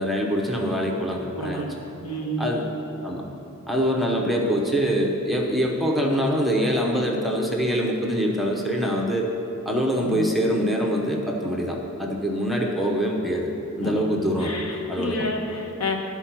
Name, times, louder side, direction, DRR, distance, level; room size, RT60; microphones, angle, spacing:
voice 1, 0.0-1.6 2.4-2.6 3.0-3.3 3.7-9.3 9.7-13.5 13.8-14.6 14.9-15.2, equal, ahead, -1 dB, 0.7 m, -24 dB
voice 2, 1.3-1.7 2.0-2.6 10.0-10.2 13.8-15.9, left 1 dB, 75° left, 1 dB, 1.1 m, -30 dB
11.5 x 4.5 x 5.8 m, 2.9 s
head